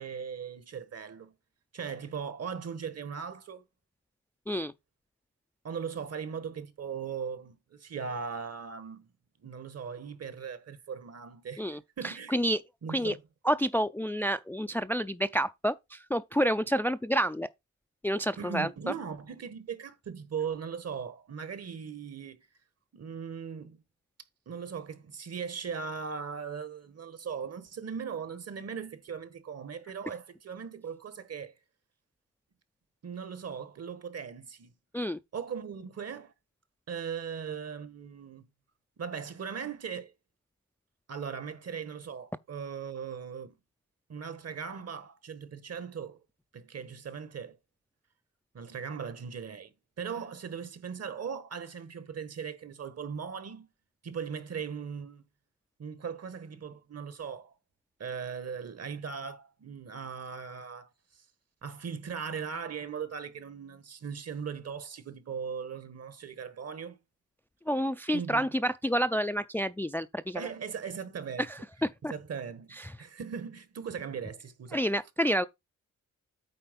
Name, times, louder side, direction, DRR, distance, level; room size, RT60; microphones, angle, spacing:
voice 1, 0.0-1.3 1.7-3.6 5.6-9.1 9.4-12.4 12.8-13.2 18.4-22.5 22.9-23.8 24.5-31.5 33.0-34.7 35.3-36.3 36.9-38.5 39.0-40.1 41.1-43.5 44.1-46.2 46.5-47.6 48.5-53.7 54.0-55.2 55.8-57.5 58.0-60.9 61.6-67.0 68.1-68.5 70.3-71.5 72.1-74.8, right 6 dB, 55° right, 1.3 m, -39 dB
voice 2, 11.6-12.6 12.9-13.1 13.4-17.5 18.0-18.7 34.9-35.2 67.7-70.5 71.8-72.1 72.8-72.9 74.7-75.4, equal, 5° left, 0.4 m, -29 dB
8.7 x 3.4 x 5.3 m
cardioid pair, 75°, 31 cm